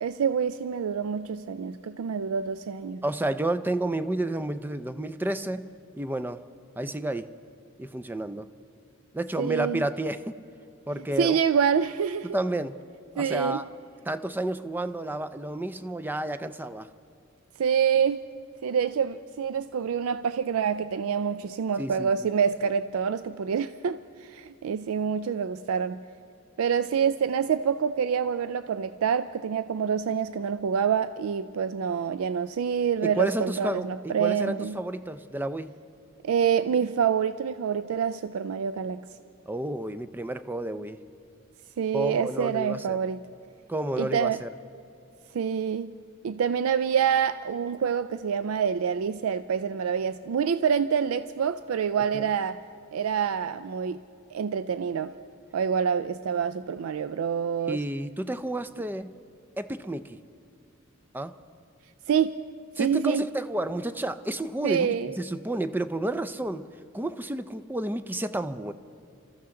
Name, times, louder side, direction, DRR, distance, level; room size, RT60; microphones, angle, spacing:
voice 1, 0.0-3.0 9.4-9.8 11.2-12.3 13.2-13.6 17.6-18.2 18.6-26.0 26.6-34.8 36.2-39.0 41.8-43.2 44.0-44.4 45.3-45.9 46.2-52.6 52.9-54.0 54.3-55.1 55.5-57.8 62.1-62.4 62.8-63.2 64.6-65.1, right 7 dB, 80° right, 12 dB, 0.4 m, -26 dB
voice 2, 3.0-5.7 6.0-6.4 6.8-7.3 7.8-8.5 9.1-10.4 10.9-11.4 12.3-12.8 13.1-13.6 14.1-16.9 21.8-22.3 33.0-33.9 34.2-35.8 39.5-41.0 41.9-43.0 43.7-44.5 52.1-52.3 57.7-59.1 59.6-60.2 61.1-61.3 62.8-66.7 66.9-68.7, right 1 dB, 10° right, 12 dB, 0.4 m, -31 dB
27.0 x 14.0 x 3.8 m, 2.5 s
head